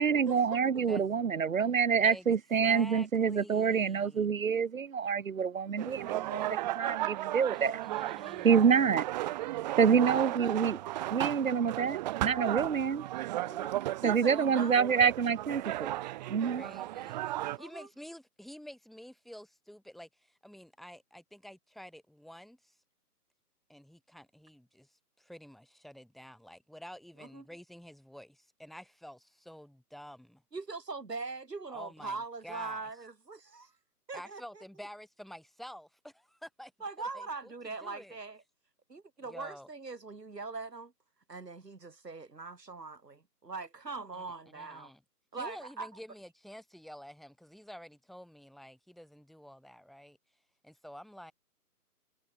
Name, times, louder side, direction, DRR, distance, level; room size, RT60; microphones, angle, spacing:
voice 1, 0.0-7.8 8.4-9.0 9.8-10.8 11.1-13.1 14.0-15.9 16.3-16.6, right 6 dB, 55° right, 3.2 m, -27 dB
voice 2, 2.0-4.2 7.5-8.9 16.5-17.2 17.6-22.7 23.7-30.4 31.7-32.2 32.4-32.9 34.1-36.7 37.0-38.2 39.2-39.7 44.1-44.2 44.5-45.0 45.4-50.2 50.6-51.3, equal, ahead, 3.0 m, -49 dB
sound 1, 5.8-17.6, right 15 dB, 25° right, 4.5 m, -35 dB
voice 3, 9.8-10.4 13.4-14.9 16.3-16.7 17.6-17.9 27.2-27.5 30.5-33.7 34.1-34.6 36.8-38.4 38.9-40.9 41.3-44.9 45.3-45.9, right 3 dB, 85° right, 6.0 m, -42 dB
figure-of-eight pair, 150°, 48 cm